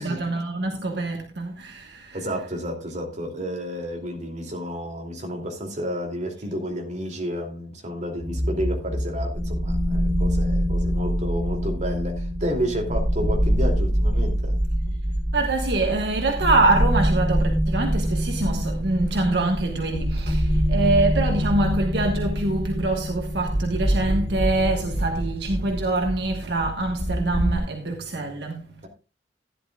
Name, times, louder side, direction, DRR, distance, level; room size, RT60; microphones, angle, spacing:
voice 1, 0.0-2.2 15.3-28.8, right 2 dB, 70° right, 1.4 m, -25 dB
voice 2, 2.1-14.6, equal, 45° right, 2.8 m, -31 dB
sound 1, 8.2-27.6, equal, 10° left, 6.2 m, -25 dB
15.0 x 10.5 x 2.4 m
head